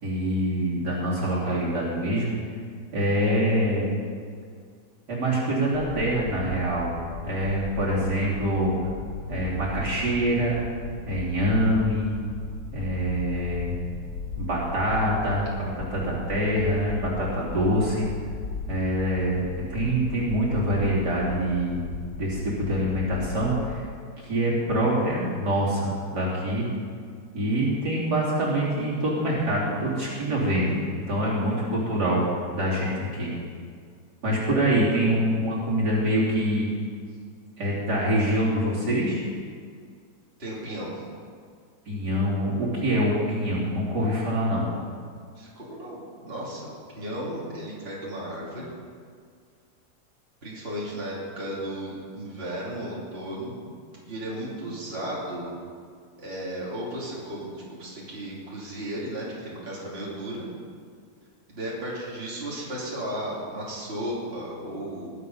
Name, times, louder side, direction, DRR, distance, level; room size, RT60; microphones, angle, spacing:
voice 1, 0.0-2.4 2.9-3.9 5.1-6.9 7.2-8.7 9.3-10.6 11.1-12.2 12.7-13.7 14.4-15.5 15.8-18.1 18.7-21.8 22.2-23.8 24.2-26.7 27.3-33.3 34.2-36.7 37.6-39.2 41.9-44.7, equal, 60° right, -6 dB, 3.8 m, -25 dB
sound 1, 5.7-23.7, left 3 dB, 80° left, 1.9 m, -37 dB
voice 2, 40.4-40.9 45.3-48.6 50.4-53.5 54.0-55.5 56.2-60.5 61.5-65.1, right 1 dB, 30° right, -6 dB, 3.1 m, -34 dB
20.5 x 8.2 x 5.5 m, 2.1 s
omnidirectional pair, 2.0 m